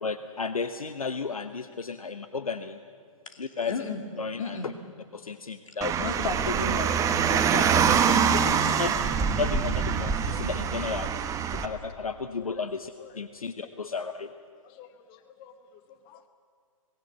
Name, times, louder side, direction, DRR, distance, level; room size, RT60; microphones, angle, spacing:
voice 1, 0.0-2.8 3.4-3.7 4.2-4.6 5.1-5.9 8.8-8.9 9.4-11.1 11.5-14.3, left 4 dB, 85° left, 10 dB, 0.9 m, -33 dB
voice 2, 3.3-4.0 4.3-4.7 5.7-6.9 7.2-8.2 8.6-9.0, left 4 dB, 65° left, 6 dB, 2.6 m, -35 dB
Car, 5.8-11.7, right 7 dB, 20° right, 1.1 m, -24 dB
voice 3, 14.6-15.5 16.1-16.3, left 10 dB, 30° left, 10 dB, 1.1 m, -51 dB
26.0 x 18.5 x 7.5 m, 2.1 s
figure-of-eight pair, 120°, 18 cm